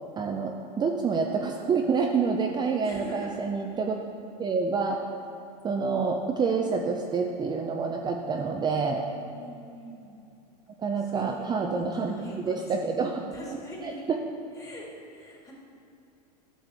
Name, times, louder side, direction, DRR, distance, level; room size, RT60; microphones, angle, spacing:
voice 1, 0.2-4.0 4.4-5.0 5.6-9.0 10.8-12.1 12.5-13.2 13.8-14.2, right 5 dB, 20° right, 2 dB, 0.5 m, -27 dB
voice 2, 2.8-3.3 8.3-10.0 11.0-12.9 13.3-14.0 14.5-15.5, equal, 15° left, -3 dB, 2.1 m, -43 dB
11.5 x 6.3 x 3.4 m, 2.6 s
hypercardioid pair, 110°, 21 cm